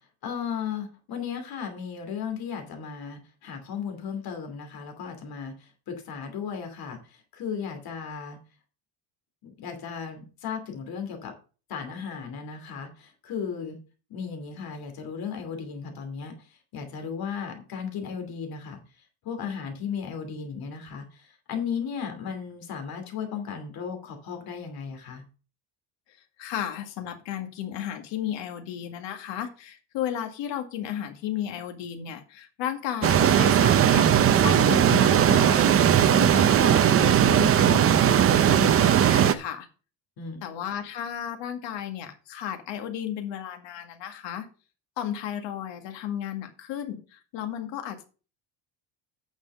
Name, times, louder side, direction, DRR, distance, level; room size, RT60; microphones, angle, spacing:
voice 1, 0.2-7.0 7.3-8.4 9.4-11.3 11.7-13.8 14.1-16.3 16.7-18.8 19.2-25.2 40.2-40.4, left 6 dB, 50° left, 5 dB, 2.8 m, -35 dB
voice 2, 26.4-34.1 34.4-35.7 36.0-39.7 40.4-44.5 45.0-48.0, left 10 dB, 75° left, 6 dB, 2.1 m, -34 dB
sound 1, 33.0-39.3, right 9 dB, 30° right, 0.6 m, -19 dB
9.1 x 6.4 x 5.4 m, 0.35 s
cardioid pair, 165°, 45 cm